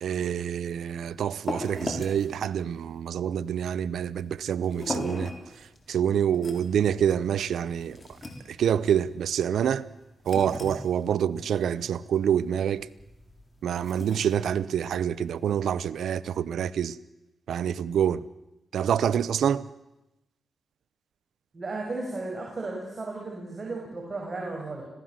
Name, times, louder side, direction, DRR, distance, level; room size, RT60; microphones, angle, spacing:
voice 1, 0.0-5.3 5.9-8.0 8.5-9.9 10.3-12.9 13.6-17.0 17.5-18.2 18.7-19.6, right 9 dB, 85° right, 0.8 m, -26 dB
sound 1, 0.7-15.7, left 2 dB, 30° left, 4.7 m, -40 dB
voice 2, 21.5-24.9, right 2 dB, 40° right, 6.1 m, -34 dB
26.0 x 17.5 x 7.5 m
cardioid pair, 70°, 0 cm